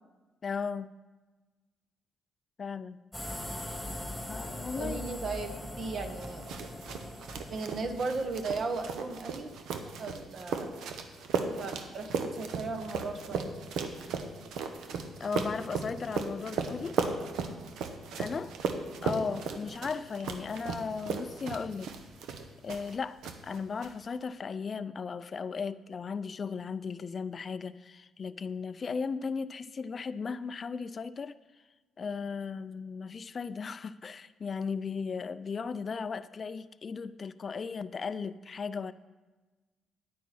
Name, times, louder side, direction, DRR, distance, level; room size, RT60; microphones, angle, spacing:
voice 1, 0.4-0.9 2.6-3.0 3.9-5.1 15.2-17.0 18.2-21.9 22.6-31.3 32.0-38.9, left 5 dB, 40° left, 13 dB, 0.3 m, -36 dB
sound 1, 3.1-9.1, left 1 dB, ahead, 2.0 m, -41 dB
voice 2, 4.8-6.4 7.5-10.7 11.4-13.6, right 3 dB, 50° right, 7 dB, 1.0 m, -36 dB
sound 2, 6.2-23.0 23.2-23.9, right 5 dB, 80° right, 0.8 m, -36 dB
9.3 x 9.3 x 4.2 m, 1.3 s
cardioid pair, 90°, 0 cm